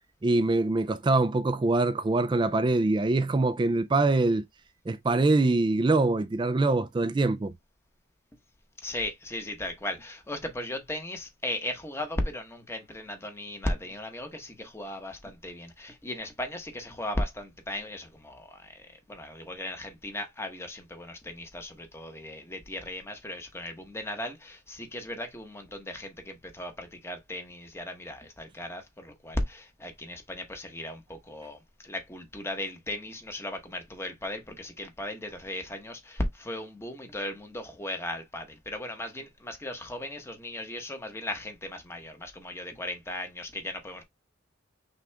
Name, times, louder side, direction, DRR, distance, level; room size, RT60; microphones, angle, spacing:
voice 1, 0.2-4.5 4.9-7.5, right 2 dB, 25° right, 0.3 m, -24 dB
voice 2, 8.8-44.0, left 1 dB, 15° left, 1.0 m, -36 dB
5.9 x 2.4 x 3.4 m
head